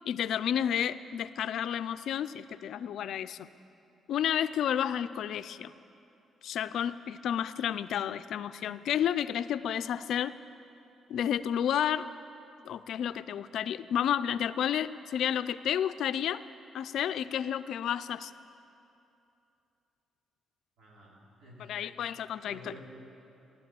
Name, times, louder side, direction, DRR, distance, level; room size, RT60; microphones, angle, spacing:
voice 1, 0.1-3.5 4.1-5.7 6.4-10.3 11.1-12.0 12.6-16.4 16.7-18.3 21.6-22.7, left 9 dB, 75° left, 13 dB, 0.5 m, -31 dB
voice 2, 20.8-21.8 22.4-22.8, equal, 80° right, -5 dB, 4.7 m, -51 dB
15.5 x 12.0 x 7.7 m, 2.7 s
cardioid pair, 95°, 0 cm